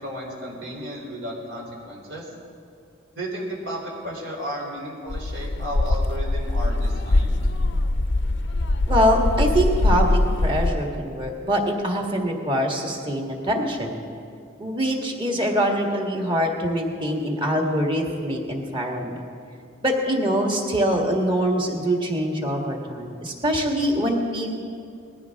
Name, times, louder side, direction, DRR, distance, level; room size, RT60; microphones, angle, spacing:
voice 1, 0.0-2.3 3.2-7.4, equal, 70° right, -2 dB, 3.6 m, -33 dB
sound 1, 5.1-10.7, left 2 dB, 65° left, 0.6 m, -22 dB
voice 2, 8.9-14.0 14.6-19.2 19.8-24.6, equal, 25° right, 1 dB, 1.7 m, -24 dB
20.0 x 14.5 x 3.6 m, 2.4 s
head